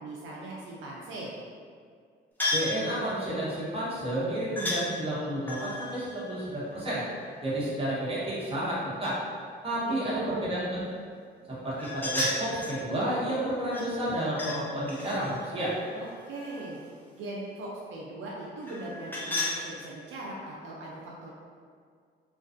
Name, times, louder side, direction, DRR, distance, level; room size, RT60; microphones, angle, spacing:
voice 1, 0.0-1.3 9.8-10.5 15.9-16.8 17.2-21.3, right 2 dB, 75° right, -4 dB, 0.4 m, -40 dB
sound 1, 2.4-2.8 4.6-4.8 5.4-7.2 11.8-12.8 13.7-14.6 14.9-16.8 18.6-19.6, left 2 dB, 10° left, 0.5 m, -33 dB
voice 2, 2.5-7.0 7.4-9.1 9.6-10.8 11.6-15.7, right 1 dB, 30° right, -8 dB, 1.0 m, -31 dB
2.5 x 2.2 x 2.4 m, 2.1 s
cardioid pair, 90°, 20 cm